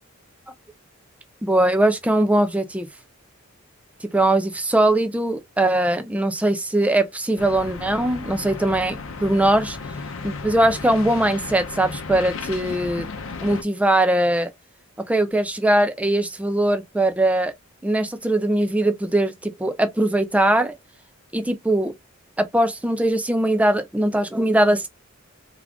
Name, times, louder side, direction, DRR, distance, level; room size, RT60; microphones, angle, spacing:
voice 1, 1.4-2.9 4.0-9.8 10.2-13.1 13.4-14.5 15.1-17.5 17.8-20.7 21.3-21.9 22.4-24.9, right 1 dB, 5° right, 0.4 m, -21 dB
sound 1, 7.4-13.6, left 4 dB, 65° left, 0.6 m, -34 dB
3.5 x 2.4 x 3.4 m
head